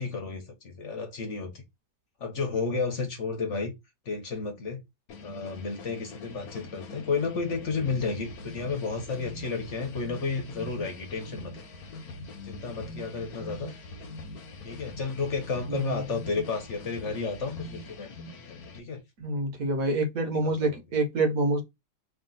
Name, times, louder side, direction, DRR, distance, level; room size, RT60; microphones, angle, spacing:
voice 1, 0.0-1.6 2.2-3.7 4.0-4.8 5.2-11.6 12.4-13.7 14.6-19.0 20.2-20.8, left 4 dB, 50° left, 1.2 m, -32 dB
sound 1, 5.1-18.8, left 2 dB, 70° left, 1.3 m, -43 dB
voice 2, 15.7-16.0 19.2-21.6, right 2 dB, 65° right, 1.4 m, -27 dB
3.0 x 3.0 x 3.8 m
omnidirectional pair, 1.7 m